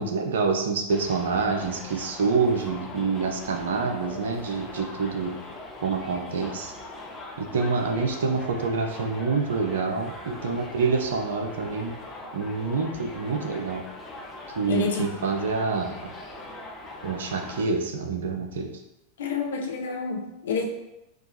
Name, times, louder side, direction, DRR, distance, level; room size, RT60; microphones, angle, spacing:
voice 1, 0.0-5.4 5.8-6.7 7.4-12.0 12.3-13.8 14.5-16.1 17.0-18.7, right 4 dB, 60° right, 4 dB, 0.5 m, -27 dB
Subway metro underground, 0.9-17.6, left 2 dB, 20° left, 0.6 m, -41 dB
voice 2, 14.7-15.1 19.2-20.6, left 5 dB, 60° left, 1 dB, 0.6 m, -28 dB
4.4 x 2.3 x 2.7 m, 0.90 s
figure-of-eight pair, 90°, 0 cm